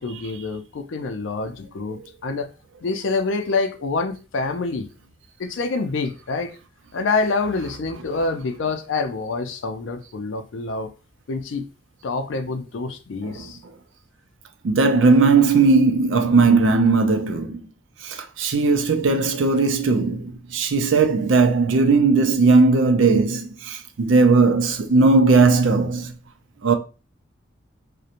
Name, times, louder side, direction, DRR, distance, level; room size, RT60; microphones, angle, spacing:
voice 1, 0.0-2.5 2.8-4.9 5.4-6.6 6.9-10.9 11.3-11.7 12.0-13.6, left 3 dB, 75° left, 0.4 m, -26 dB
voice 2, 14.6-17.6 18.0-26.2 26.6-26.7, right 4 dB, 85° right, 0.4 m, -18 dB
2.5 x 2.1 x 2.8 m
head